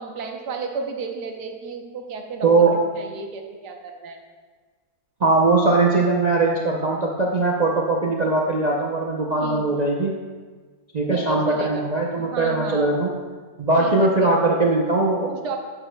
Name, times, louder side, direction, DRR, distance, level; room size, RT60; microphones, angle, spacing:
voice 1, 0.0-4.2 9.4-9.7 11.1-11.8 12.2-13.0 13.8-14.3 15.3-15.6, right 4 dB, 85° right, 3 dB, 1.5 m, -33 dB
voice 2, 2.4-2.7 5.2-10.1 10.9-13.1 13.6-15.6, right 3 dB, 55° right, -2 dB, 0.4 m, -20 dB
12.0 x 7.9 x 2.2 m, 1.4 s
omnidirectional pair, 1.7 m